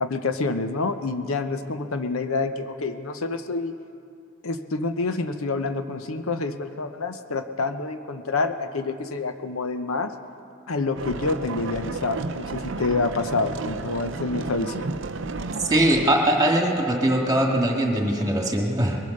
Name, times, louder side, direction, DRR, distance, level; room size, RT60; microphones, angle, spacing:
voice 1, 0.0-3.7 4.4-10.1 10.7-15.0, left 3 dB, 85° left, 8 dB, 0.8 m, -27 dB
sound 1, 11.0-16.1, right 3 dB, 60° right, 0.5 m, -32 dB
voice 2, 15.7-19.0, right 1 dB, 15° right, 0 dB, 1.8 m, -21 dB
21.5 x 8.5 x 6.6 m, 2.6 s
head